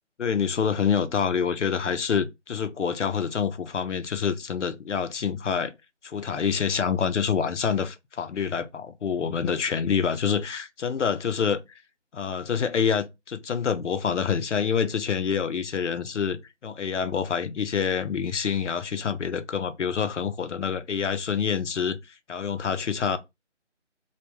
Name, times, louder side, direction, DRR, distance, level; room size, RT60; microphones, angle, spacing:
voice 1, 0.2-5.7 6.0-11.8 12.1-22.0 22.3-23.2, left 6 dB, 75° left, 0.6 m, -27 dB
2.2 x 2.2 x 3.0 m
figure-of-eight pair, 175°, 36 cm